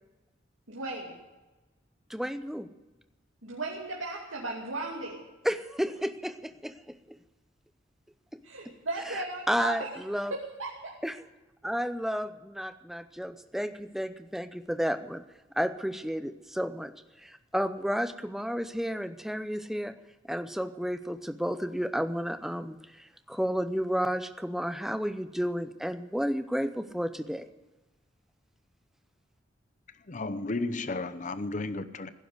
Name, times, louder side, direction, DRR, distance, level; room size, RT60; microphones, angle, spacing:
voice 1, 0.7-1.2 3.4-5.2 8.4-9.8 10.3-10.9, right 2 dB, 90° right, -3 dB, 2.6 m, -36 dB
voice 2, 2.1-2.7 5.4-7.2 9.1-10.3 11.0-11.1 11.6-15.2 15.6-16.9 17.2-19.9 20.3-27.5, equal, ahead, 11 dB, 0.6 m, -32 dB
voice 3, 30.1-32.1, left 2 dB, 40° left, 13 dB, 0.7 m, -33 dB
16.5 x 10.0 x 7.9 m, 1.1 s
head